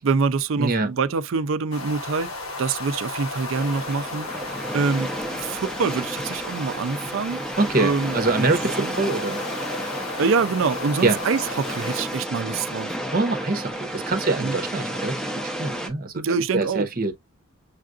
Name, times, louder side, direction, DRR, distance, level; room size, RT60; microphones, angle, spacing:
voice 1, 0.0-2.3 2.6-7.4 7.8-8.5 8.8-8.9 10.2-13.0 14.4-14.6 16.2-16.9, right 4 dB, 65° right, 0.4 m, -25 dB
voice 2, 0.6-0.9 7.6-9.4 11.0-11.2 13.1-16.1 16.5-17.1, right 3 dB, 45° right, 0.8 m, -24 dB
sound 1, 1.7-12.2, left 3 dB, 80° left, 1.3 m, -35 dB
sound 2, 3.5-15.9, equal, 5° left, 0.8 m, -32 dB
6.6 x 2.4 x 2.4 m
head